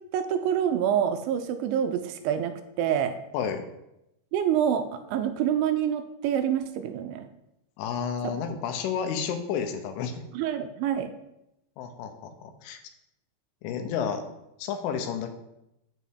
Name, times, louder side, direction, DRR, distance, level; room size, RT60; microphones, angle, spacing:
voice 1, 0.0-3.2 4.3-7.3 8.2-8.3 10.3-11.1, right 9 dB, 80° right, 8 dB, 2.9 m, -27 dB
voice 2, 7.8-10.2 11.8-12.8 13.6-14.2 14.6-15.3, left 7 dB, 80° left, 6 dB, 3.5 m, -31 dB
9.0 x 5.6 x 7.6 m, 0.86 s
omnidirectional pair, 5.6 m